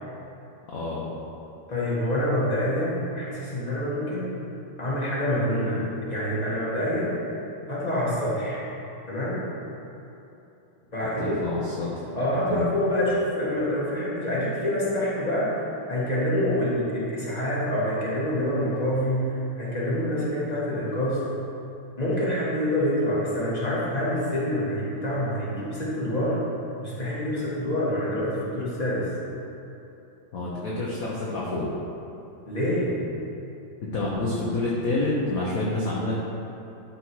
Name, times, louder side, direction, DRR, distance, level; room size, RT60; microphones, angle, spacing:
voice 1, 0.7-1.1 11.2-12.1 12.5-12.7 30.3-31.7 33.9-36.1, left 2 dB, 50° left, -6 dB, 1.3 m, -28 dB
voice 2, 1.7-4.4 4.8-7.2 7.7-8.6 9.1-9.4 10.9-11.5 12.2-21.2 22.0-26.4 26.8-29.1 32.5-33.0, equal, 20° left, -7 dB, 1.9 m, -26 dB
12.0 x 4.2 x 4.7 m, 3.0 s
omnidirectional pair, 2.1 m